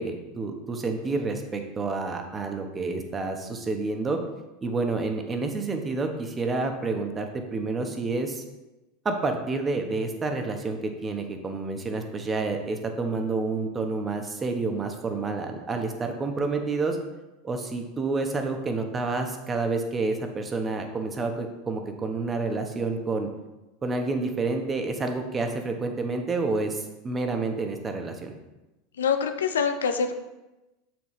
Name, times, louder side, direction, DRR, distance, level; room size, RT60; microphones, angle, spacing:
voice 1, 0.0-4.2 4.6-8.4 9.0-17.0 17.4-23.3 23.8-28.3, right 3 dB, 25° right, 5 dB, 1.1 m, -29 dB
voice 2, 29.0-30.1, left 6 dB, 85° left, 7 dB, 0.5 m, -25 dB
6.8 x 6.1 x 3.2 m, 1.0 s
hypercardioid pair, 90°, 0 cm